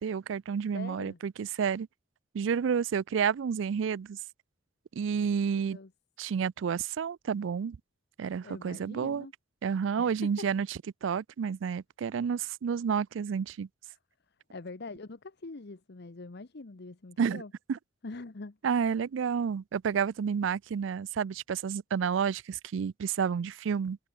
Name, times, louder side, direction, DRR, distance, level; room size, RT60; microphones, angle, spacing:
voice 1, 0.0-1.9 2.3-4.2 4.9-5.8 6.2-7.8 8.2-9.3 9.6-13.7 17.2-17.4 17.7-17.8 18.6-24.0, right 7 dB, 70° right, 0.4 m, -30 dB
voice 2, 0.7-1.2 5.2-5.3 5.5-5.9 8.4-9.3 10.0-10.5 14.5-17.5 18.0-18.6, left 3 dB, 60° left, 0.9 m, -43 dB
open air
head